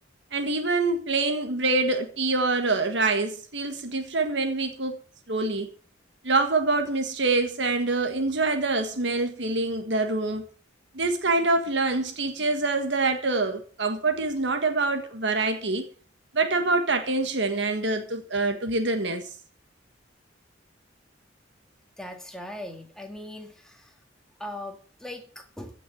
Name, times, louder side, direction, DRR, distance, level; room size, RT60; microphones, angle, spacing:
voice 1, 0.3-5.0 5.3-5.7 6.2-10.4 10.9-15.9 16.3-19.2, right 3 dB, 60° right, 1.6 m, -25 dB
voice 2, 22.0-23.8 24.4-25.7, left 1 dB, 5° left, 2.0 m, -39 dB
15.5 x 6.1 x 8.0 m
head